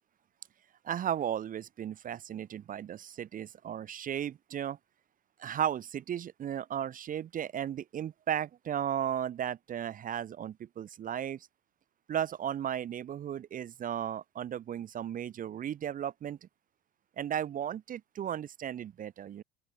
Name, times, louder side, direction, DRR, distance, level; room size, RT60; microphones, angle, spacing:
voice 1, 0.8-4.8 5.4-11.5 12.1-16.4 17.2-19.4, right 9 dB, 30° right, 0.5 m, -35 dB
open air
supercardioid pair, 105°, 31 cm